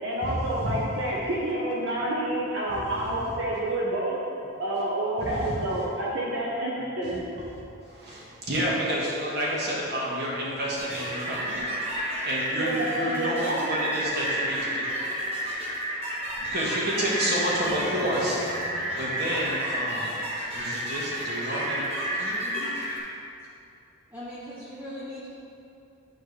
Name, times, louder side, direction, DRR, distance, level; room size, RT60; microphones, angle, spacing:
voice 1, 0.0-4.2 4.6-7.2 12.6-13.7, right 1 dB, 70° right, -6 dB, 0.9 m, -28 dB
voice 2, 5.2-5.6 7.8-11.6 12.2-14.9 16.4-18.4 19.0-20.1 20.5-21.8, equal, 50° right, -5 dB, 1.5 m, -29 dB
sound 1, 10.8-23.0, equal, 30° right, 1.2 m, -31 dB
sound 2, 16.4-16.5 17.2-20.0, equal, 55° left, 1.2 m, -44 dB
voice 3, 22.2-22.7 24.1-25.3, left 1 dB, 10° right, -10 dB, 0.8 m, -39 dB
10.5 x 4.3 x 3.3 m, 2.6 s
head